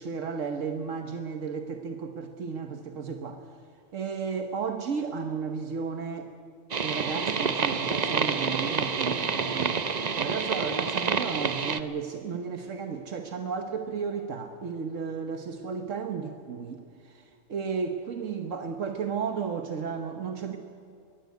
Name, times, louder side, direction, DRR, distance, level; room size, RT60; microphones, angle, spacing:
voice 1, 0.0-3.4 3.9-6.3 6.8-9.9 10.2-20.6, right 5 dB, 75° right, 6 dB, 1.5 m, -33 dB
sound 1, 6.7-11.8, right 5 dB, 40° right, 0.8 m, -28 dB
22.5 x 17.0 x 9.3 m, 2.4 s
omnidirectional pair, 1.3 m